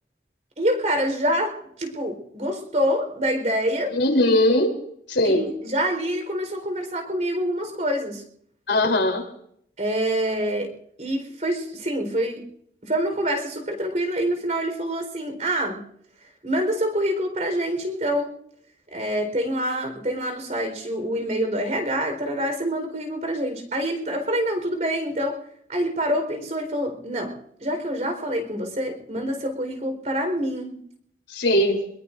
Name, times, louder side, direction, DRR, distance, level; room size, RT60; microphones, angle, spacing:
voice 1, 0.6-4.0 5.2-8.2 9.8-12.4 12.8-15.8 16.4-18.4 18.9-25.4 25.7-30.8, equal, 40° right, 5 dB, 4.2 m, -26 dB
voice 2, 3.9-4.8 5.1-5.4 8.7-9.2 31.3-31.8, left 1 dB, 80° left, 3 dB, 3.6 m, -20 dB
25.5 x 21.5 x 2.6 m, 0.68 s
head